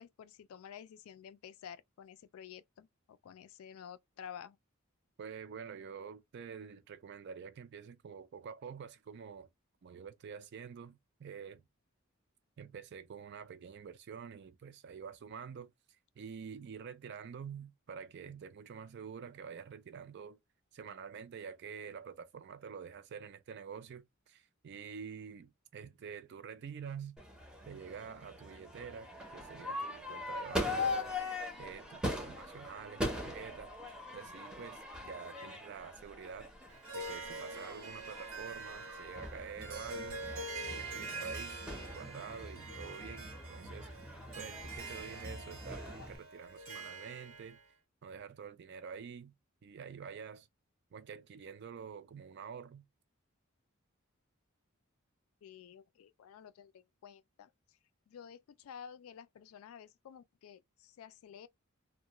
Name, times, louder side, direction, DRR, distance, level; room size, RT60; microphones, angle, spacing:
voice 1, 0.0-4.6 55.4-57.5 58.1-61.5, left 8 dB, 80° left, 0.3 m, -51 dB
voice 2, 5.2-9.5 9.8-11.6 12.6-15.7 16.2-20.4 20.7-27.2 27.7-31.1 31.6-33.7 34.1-36.5 36.9-40.2 40.7-41.6 41.9-43.9 44.3-47.6 48.0-49.3 49.6-50.5 50.9-52.8, right 6 dB, 50° right, 0.4 m, -47 dB
Crowd / Fireworks, 27.2-46.2, left 2 dB, 5° right, 0.6 m, -42 dB
Harp, 36.7-47.6, right 3 dB, 80° right, 1.0 m, -45 dB
2.3 x 2.1 x 2.8 m
head